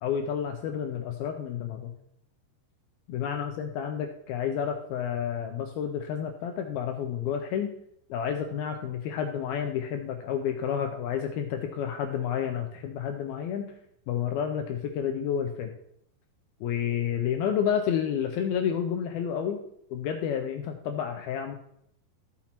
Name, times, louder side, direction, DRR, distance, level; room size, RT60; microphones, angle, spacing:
voice 1, 0.0-1.9 3.1-7.7 8.1-13.7 14.1-15.7 16.6-19.6 19.9-21.6, left 8 dB, 85° left, 4 dB, 2.2 m, -30 dB
14.5 x 5.9 x 4.4 m, 0.72 s
omnidirectional pair, 5.2 m